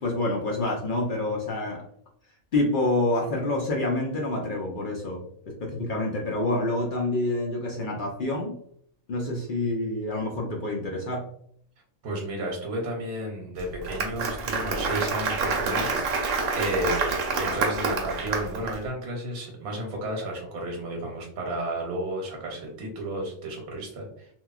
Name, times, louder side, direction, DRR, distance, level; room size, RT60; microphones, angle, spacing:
voice 1, 0.0-1.8 2.5-8.6 9.1-11.3, left 2 dB, 65° left, -2 dB, 0.5 m, -27 dB
voice 2, 12.0-16.3 16.6-17.1 17.4-24.3, right 1 dB, 90° right, 0 dB, 1.2 m, -32 dB
Applause, 13.6-18.7, right 4 dB, 70° right, 1.0 m, -27 dB
2.9 x 2.2 x 2.3 m, 0.65 s
omnidirectional pair, 1.5 m